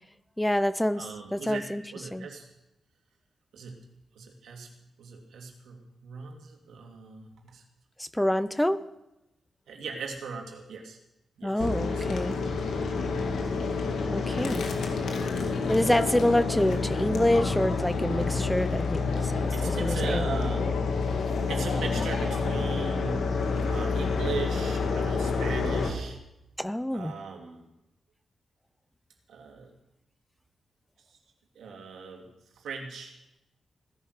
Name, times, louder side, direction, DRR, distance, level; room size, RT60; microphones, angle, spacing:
voice 1, 0.4-1.8 2.1-2.3 8.0-8.8 11.4-12.4 14.1-14.7 15.7-20.2 26.6-27.2, left 1 dB, 5° left, 14 dB, 0.7 m, -27 dB
voice 2, 0.9-2.5 3.5-3.9 4.1-4.7 5.0-7.6 9.7-11.0 11.4-12.3 12.7-13.0 14.2-14.5 19.5-20.9 21.5-23.4 23.6-26.2 26.9-27.7 29.3-29.7 31.5-32.3 32.6-33.2, right 5 dB, 85° right, 2 dB, 2.6 m, -39 dB
sound 1, 11.6-25.9, left 4 dB, 80° left, 2.3 m, -28 dB
17.0 x 10.5 x 6.7 m, 0.91 s
cardioid pair, 85°, 0 cm